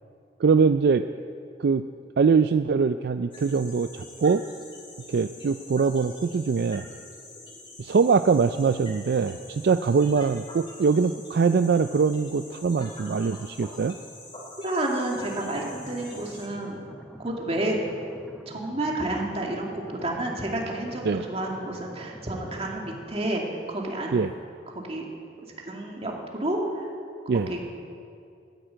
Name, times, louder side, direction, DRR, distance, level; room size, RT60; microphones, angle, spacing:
voice 1, 0.4-1.0 1.6-1.8 2.2-4.4 5.1-6.9 7.8-13.9 21.0-21.2 24.1-24.3 27.3-27.5, right 5 dB, 65° right, 10 dB, 0.4 m, -22 dB
sound 1, 3.3-16.5, left 2 dB, 30° left, 3.4 m, -46 dB
voice 2, 14.6-16.8 17.2-17.8 18.5-24.2 24.7-25.1 25.6-26.9 27.3-27.6, right 1 dB, 35° right, -1 dB, 2.4 m, -30 dB
sound 2, 15.1-23.1, equal, ahead, 0.9 m, -46 dB
13.5 x 9.5 x 9.0 m, 2.4 s
head